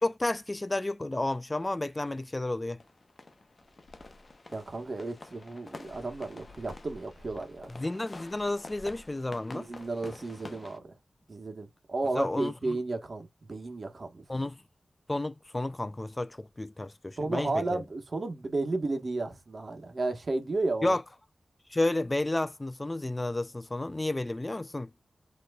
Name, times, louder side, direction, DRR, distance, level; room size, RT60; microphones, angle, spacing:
voice 1, 0.0-2.8 7.7-9.7 12.2-12.8 14.3-14.6 15.1-17.8 20.8-21.0 21.7-24.9, left 2 dB, 25° left, 0.3 m, -31 dB
sound 1, 2.8-10.8, left 2 dB, 45° left, 0.8 m, -48 dB
voice 2, 4.5-7.7 9.5-10.9 11.3-14.2 17.2-21.0, right 2 dB, 55° right, 1.2 m, -33 dB
7.7 x 3.0 x 2.3 m
cardioid pair, 55°, 0 cm